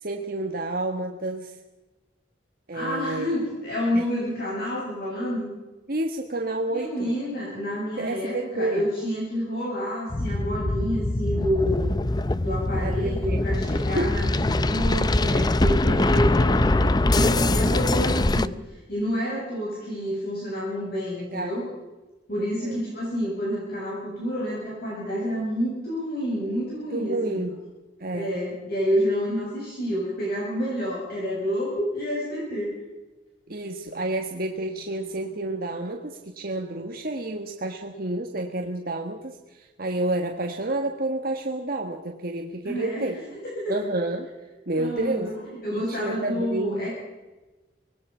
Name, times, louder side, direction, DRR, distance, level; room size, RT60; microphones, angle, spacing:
voice 1, 0.0-1.6 2.7-3.3 3.9-4.0 5.9-7.2 8.0-8.9 12.8-13.4 13.9-14.2 16.9-17.1 21.3-21.5 22.6-22.8 26.9-27.6 28.0-28.3 33.5-43.2 43.7-44.3 44.7-45.3 45.7-46.9, right 2 dB, 55° right, 3 dB, 1.6 m, -30 dB
voice 2, 2.7-5.5 6.7-11.9 12.4-18.6 18.9-21.7 22.3-27.4 28.1-32.8 42.6-43.8 44.7-46.9, equal, 55° left, -5 dB, 7.3 m, -29 dB
sound 1, 10.1-18.5, left 2 dB, 25° left, 0.6 m, -23 dB
25.0 x 20.0 x 5.7 m, 1.1 s
head